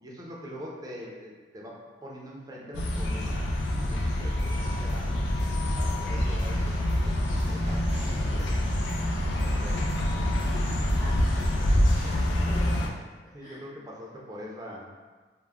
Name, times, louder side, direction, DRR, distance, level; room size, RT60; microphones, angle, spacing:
voice 1, 0.0-3.4 3.8-5.2 5.7-8.6 9.3-10.4 13.3-15.0, equal, 20° right, -3 dB, 0.4 m, -43 dB
sound 1, 2.7-12.9, left 1 dB, 75° left, 0.4 m, -26 dB
sound 2, 4.1-12.1, equal, 85° right, 0.5 m, -38 dB
voice 2, 11.0-13.1 13.4-13.7, equal, 20° left, -9 dB, 0.9 m, -46 dB
2.2 x 2.0 x 3.4 m, 1.3 s
head